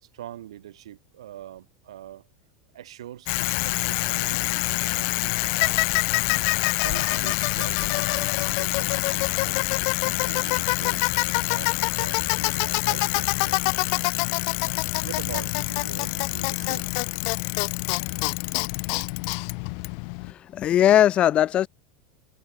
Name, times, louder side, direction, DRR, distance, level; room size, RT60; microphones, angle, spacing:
voice 1, 0.0-2.3 2.7-6.1 6.7-9.7 10.0-13.6 15.0-16.9, right 12 dB, 75° right, 2.3 m, -43 dB
Bicycle, 3.3-20.3, left 40 dB or more, 55° left, 0.8 m, -25 dB
voice 2, 20.2-21.7, left 11 dB, 40° left, 1.3 m, -19 dB
hypercardioid pair, 85°, 3 cm